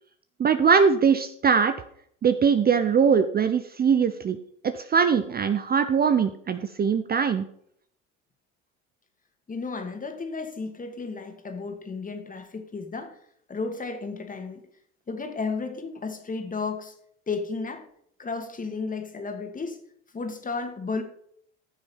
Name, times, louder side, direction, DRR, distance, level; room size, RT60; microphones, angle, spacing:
voice 1, 0.4-1.7 2.2-4.4 4.7-7.5, right 6 dB, 25° right, 10 dB, 0.8 m, -21 dB
voice 2, 9.5-13.2 13.5-14.6 15.1-16.9 17.3-17.8 18.2-19.8 20.1-21.0, left 4 dB, 20° left, 6 dB, 2.4 m, -33 dB
14.5 x 6.3 x 5.7 m, 0.68 s
hypercardioid pair, 80°, 36 cm